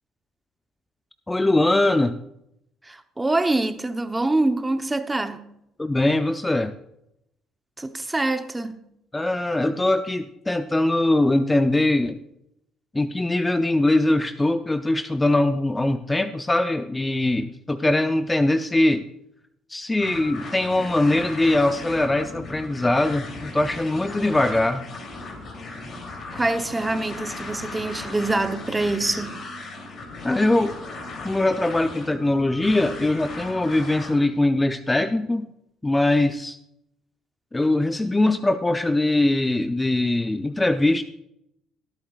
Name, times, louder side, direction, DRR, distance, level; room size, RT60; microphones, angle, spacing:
voice 1, 1.3-2.2 5.8-6.7 9.1-12.2 12.9-19.1 19.7-24.9 30.2-30.7 31.2-35.5 35.8-36.6 37.5-41.0, left 2 dB, 15° left, 0.5 m, -22 dB
voice 2, 2.8-5.4 7.8-8.8 26.3-29.3, right 2 dB, 15° right, 0.9 m, -25 dB
sound 1, 20.0-34.1, left 3 dB, 50° left, 3.1 m, -37 dB
22.5 x 8.6 x 2.4 m
supercardioid pair, 75°, 0 cm